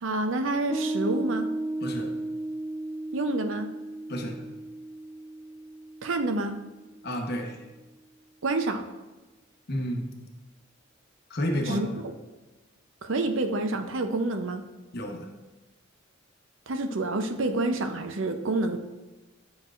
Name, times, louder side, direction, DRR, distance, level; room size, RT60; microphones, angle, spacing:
voice 1, 0.0-1.5 3.1-3.7 6.0-6.6 8.4-8.8 11.7-12.1 13.0-14.6 16.7-18.8, right 2 dB, 70° right, 7 dB, 0.6 m, -28 dB
Piano, 0.7-7.5, right 2 dB, 10° right, 0.6 m, -35 dB
voice 2, 1.8-2.1 4.1-4.4 7.0-7.6 9.7-10.1 11.3-11.8 14.9-15.3, equal, 50° left, 2 dB, 0.9 m, -30 dB
10.5 x 6.0 x 2.5 m, 1.1 s
head